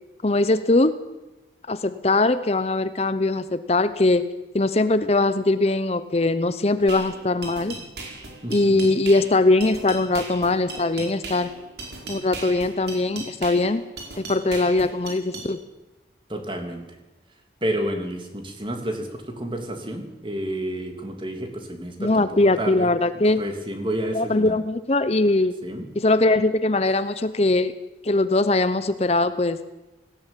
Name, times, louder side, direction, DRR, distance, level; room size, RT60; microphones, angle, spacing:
voice 1, 0.2-0.9 1.7-4.3 4.5-7.7 8.5-11.5 12.1-13.8 14.2-15.6 22.0-23.4 24.1-25.6 26.0-27.7 28.0-29.6, left 2 dB, 35° left, 12 dB, 0.8 m, -21 dB
sound 1, 6.9-15.5, right 3 dB, 70° right, 5.0 m, -37 dB
voice 2, 8.4-8.9 16.3-16.8 17.6-22.2 22.6-22.9 23.4-24.5 25.6-25.9, right 1 dB, 30° right, 4 dB, 3.0 m, -30 dB
18.5 x 17.5 x 9.1 m, 1.0 s
head